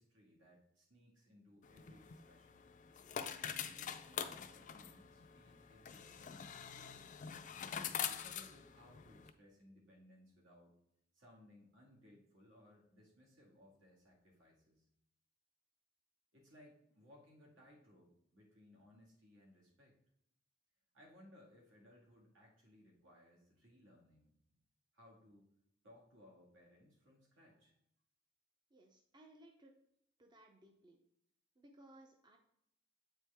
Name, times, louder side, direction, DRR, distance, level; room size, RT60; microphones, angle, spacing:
voice 1, 0.0-7.0 8.0-10.7 11.1-14.8 16.3-20.0 20.9-24.6 24.9-25.5 25.8-27.7, left 1 dB, 75° right, -1 dB, 2.0 m, -64 dB
sound 1, 1.6-9.3, left 8 dB, 40° left, 0.4 m, -45 dB
voice 2, 28.7-29.7 30.2-31.0 31.6-32.4, right 1 dB, 25° right, 2 dB, 0.6 m, -62 dB
7.9 x 4.5 x 3.5 m, 0.73 s
head